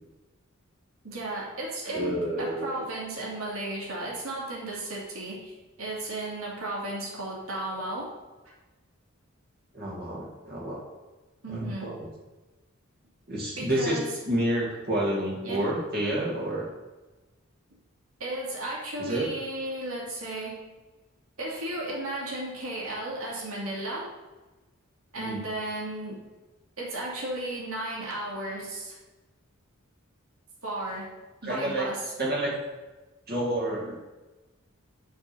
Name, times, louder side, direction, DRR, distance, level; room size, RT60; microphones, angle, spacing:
voice 1, 1.0-8.1 11.4-11.9 13.6-14.1 15.4-15.6 18.2-20.6 21.4-24.1 25.1-26.2 26.8-29.0 30.6-31.1 31.4-32.0, right 1 dB, 80° right, -4 dB, 2.8 m, -34 dB
voice 2, 1.9-2.8 9.7-10.8 11.5-12.1 13.3-14.0 14.3-16.7 19.0-19.3 25.2-25.4 31.4-31.9 32.2-32.5 33.3-34.0, right 1 dB, 50° right, -3 dB, 2.0 m, -29 dB
6.4 x 5.9 x 7.0 m, 1.2 s
head